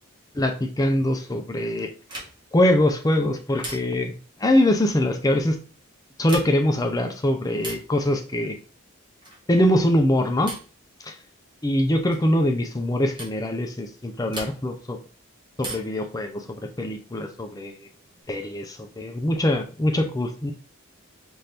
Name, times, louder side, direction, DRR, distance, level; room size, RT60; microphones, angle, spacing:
voice 1, 0.4-1.9 2.5-4.1 4.4-5.6 6.2-8.6 9.5-10.5 11.0-11.1 11.6-15.0 15.6-16.4 16.8-17.8 18.3-20.5, left 1 dB, 15° left, 5 dB, 0.5 m, -23 dB
sound 1, 2.1-2.6 3.6-4.2 6.1-6.8 7.6-8.0 9.2-9.6 10.5-10.8 12.1-12.3 13.2-13.4 14.3-14.9 15.6-16.1 17.5-18.2, right 1 dB, 20° right, 1.4 m, -38 dB
5.7 x 2.6 x 3.4 m, 0.36 s
head